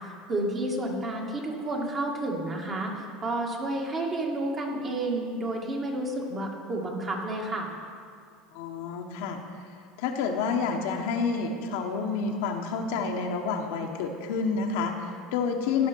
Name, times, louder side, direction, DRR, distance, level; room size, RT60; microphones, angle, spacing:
voice 1, 0.3-7.7, right 1 dB, 35° right, 0 dB, 2.0 m, -30 dB
voice 2, 8.5-9.4 10.0-15.9, left 5 dB, 75° left, 3 dB, 1.1 m, -29 dB
16.0 x 5.7 x 4.6 m, 2.3 s
supercardioid pair, 100°, 0 cm